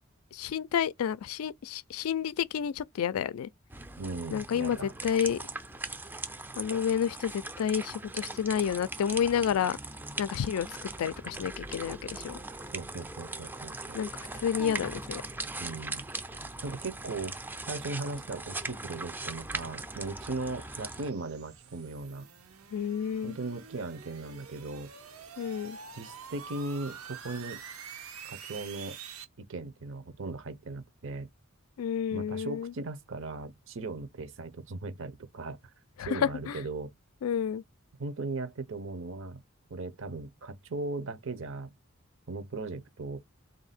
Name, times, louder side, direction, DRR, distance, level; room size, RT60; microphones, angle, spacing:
voice 1, 0.3-3.5 4.3-5.4 6.6-9.8 10.2-12.4 13.9-15.2 22.7-23.4 25.4-25.8 31.8-32.7 36.0-36.6 37.2-37.6, left 8 dB, 85° left, 0.3 m, -30 dB
sound 1, 3.7-21.1, right 2 dB, 10° right, 0.4 m, -40 dB
voice 2, 4.0-4.9 12.7-14.0 15.6-16.0 16.6-17.4 17.7-22.3 23.2-24.9 25.9-27.6 28.2-29.0 29.4-31.3 32.1-35.6 36.0-36.9 38.0-39.4 39.7-41.7 42.3-43.2, right 3 dB, 65° right, 0.7 m, -38 dB
sound 2, 18.2-29.2, right 7 dB, 90° right, 0.9 m, -48 dB
3.5 x 2.6 x 4.1 m
head